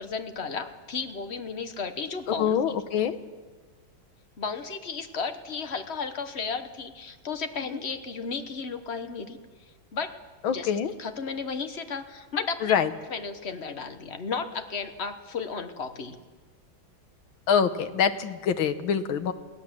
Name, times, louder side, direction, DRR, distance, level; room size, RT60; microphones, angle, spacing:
voice 1, 0.0-2.6 4.4-9.4 9.9-10.1 10.5-10.7 11.0-12.8 13.1-16.2, left 5 dB, 40° left, 8 dB, 1.2 m, -34 dB
voice 2, 2.3-3.2 10.4-10.9 12.6-12.9 17.5-19.3, left 7 dB, 85° left, 9 dB, 1.8 m, -25 dB
22.5 x 17.0 x 7.6 m, 1.4 s
omnidirectional pair, 2.2 m